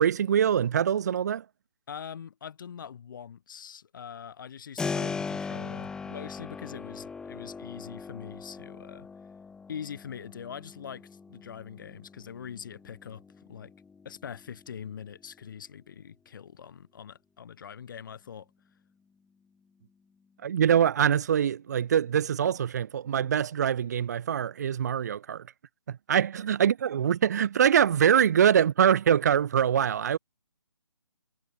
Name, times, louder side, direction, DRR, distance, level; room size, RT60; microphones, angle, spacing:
voice 1, 0.0-1.4 20.4-25.4 25.9-30.2, right 8 dB, 35° right, 0.7 m, -24 dB
voice 2, 1.9-9.1 9.7-13.2 13.5-13.7 14.0-18.5, left 8 dB, 45° left, 3.9 m, -43 dB
Keyboard (musical), 4.8-15.5, left 5 dB, 5° left, 1.5 m, -40 dB
figure-of-eight pair, 150°, 15 cm